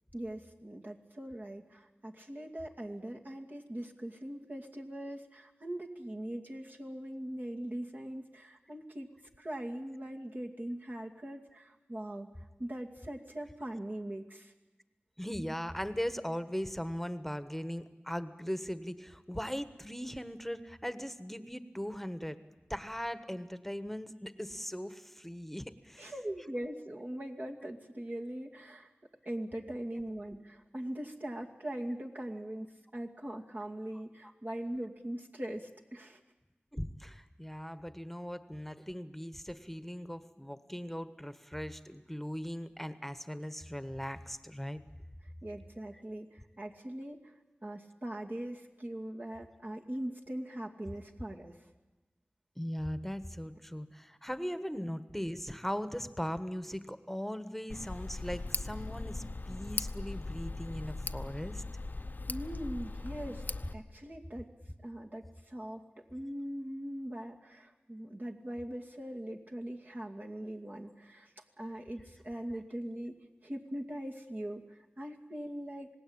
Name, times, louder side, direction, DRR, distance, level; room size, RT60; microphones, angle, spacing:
voice 1, 0.1-9.1 9.4-12.3 12.6-14.5 26.0-28.9 29.2-36.2 45.4-47.3 47.6-51.6 62.3-63.4 63.7-64.5 64.8-73.1 73.4-75.9, right 1 dB, 45° right, 0 dB, 2.4 m, -41 dB
voice 2, 15.2-22.4 22.7-26.1 36.7-44.8 52.6-61.6, equal, 5° left, 11 dB, 1.4 m, -39 dB
Tick, 57.7-63.7, left 2 dB, 50° left, 0.8 m, -39 dB
27.0 x 18.5 x 8.8 m, 1.1 s
wide cardioid pair, 40°, 4 cm